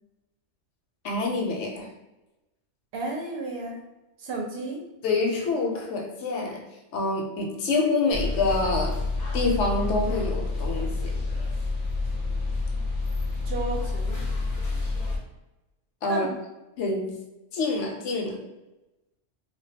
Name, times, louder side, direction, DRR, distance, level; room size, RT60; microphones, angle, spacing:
voice 1, 1.0-1.9 5.0-6.7 6.9-9.0 9.3-11.1 16.0-16.3 16.8-17.2 17.5-18.4, left 3 dB, 80° left, 1 dB, 0.9 m, -26 dB
voice 2, 2.9-3.8 4.2-4.8 13.4-14.2 16.1-16.3, right 2 dB, 65° right, 0 dB, 0.8 m, -32 dB
sound 1, 8.1-15.2, left 3 dB, 50° left, 0.6 m, -28 dB
2.3 x 2.2 x 2.6 m, 1.0 s
omnidirectional pair, 1.2 m